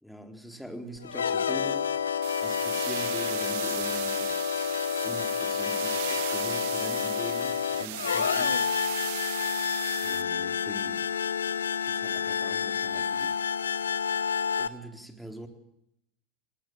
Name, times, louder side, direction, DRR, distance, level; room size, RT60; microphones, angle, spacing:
voice 1, 0.0-1.9 2.4-4.4 5.0-8.6 10.0-11.1 11.8-13.4 14.6-15.5, right 1 dB, ahead, 6 dB, 3.9 m, -43 dB
sound 1, 1.0-14.7, left 7 dB, 85° left, 1.0 m, -29 dB
sound 2, 2.2-10.2, right 19 dB, 60° right, 0.9 m, -37 dB
19.5 x 19.5 x 7.8 m, 0.82 s
hypercardioid pair, 85°, 0 cm